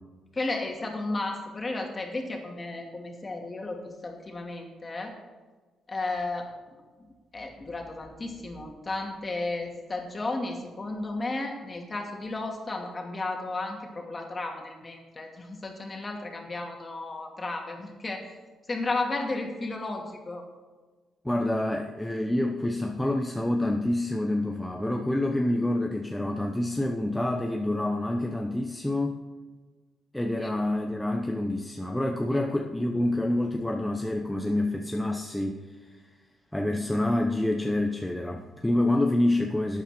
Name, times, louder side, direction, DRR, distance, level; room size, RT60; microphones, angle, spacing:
voice 1, 0.3-5.2 5.9-6.5 7.0-7.1 7.3-18.4 18.7-20.4 30.4-30.5 32.3-32.4, left 2 dB, 30° left, 2 dB, 2.4 m, -33 dB
voice 2, 21.2-29.2 30.1-35.6 35.9-36.0 36.5-39.8, left 1 dB, 5° left, 2 dB, 0.9 m, -27 dB
12.5 x 8.9 x 4.4 m, 1.3 s
cardioid pair, 90°, 0 cm